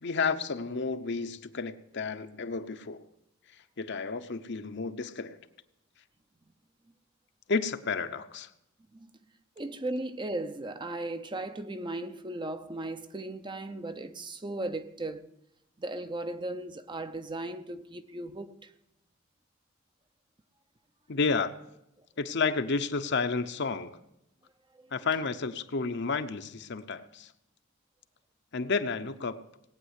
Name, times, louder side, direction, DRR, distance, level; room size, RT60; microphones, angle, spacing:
voice 1, 0.0-3.0 3.8-5.4 7.5-8.5 21.1-21.5 22.2-24.0 24.9-27.3 28.5-29.4, left 4 dB, 55° left, 0.8 m, -31 dB
voice 2, 9.6-15.3 15.8-18.7 24.8-24.9, right 2 dB, 20° right, 0.7 m, -37 dB
18.5 x 9.0 x 8.2 m
head